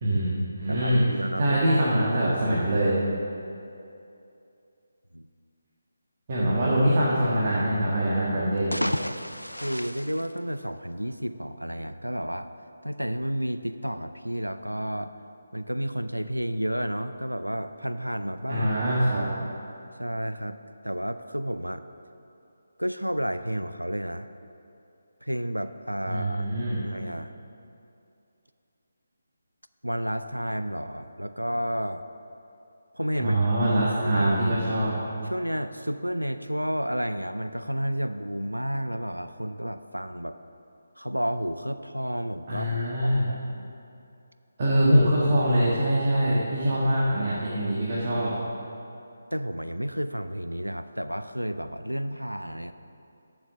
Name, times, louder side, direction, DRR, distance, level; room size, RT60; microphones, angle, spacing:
voice 1, 0.0-1.0 1.4-3.0 6.3-8.7 18.5-19.2 26.1-26.8 33.2-34.9 42.5-43.3 44.6-48.3, right 1 dB, 35° right, -7 dB, 1.5 m, -23 dB
voice 2, 0.7-1.6 5.1-5.3 9.1-12.5 12.8-15.2 15.5-18.7 20.0-20.6 20.8-21.8 22.8-24.3 25.2-26.5 26.8-27.3 29.8-32.1 32.9-33.4 33.7-34.3 35.2-40.4 41.0-42.7 43.0-43.7 49.3-52.7, equal, 85° right, 11 dB, 0.4 m, -31 dB
sound 1, 8.5-11.1, equal, 85° left, 0.4 m, -32 dB
7.5 x 7.3 x 6.7 m, 2.7 s
figure-of-eight pair, 150°, 0 cm